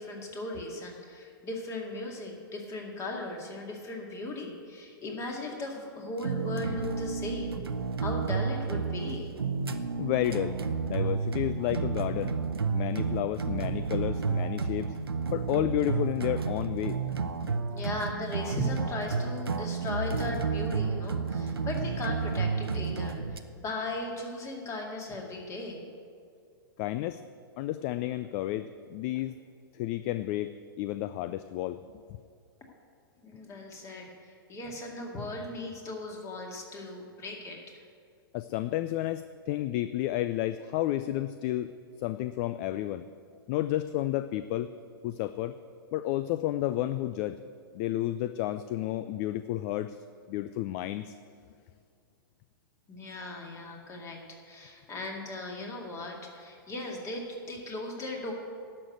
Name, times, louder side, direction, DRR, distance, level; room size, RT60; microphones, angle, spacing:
voice 1, 0.0-7.6 8.0-9.3 17.7-25.9 33.2-37.8 52.9-58.3, left 2 dB, 25° left, 1 dB, 2.2 m, -37 dB
sound 1, 6.2-23.4, right 5 dB, 85° right, 0.7 m, -31 dB
voice 2, 10.0-10.5 10.8-12.3 12.7-14.9 15.3-17.0 26.8-27.2 27.6-29.4 29.7-30.5 30.8-31.8 38.3-41.7 42.0-43.1 43.5-44.7 45.0-45.6 45.9-47.4 47.7-50.0 50.3-51.2, left 14 dB, 40° left, 12 dB, 0.4 m, -31 dB
11.5 x 6.5 x 7.9 m, 2.3 s
hypercardioid pair, 110°, 12 cm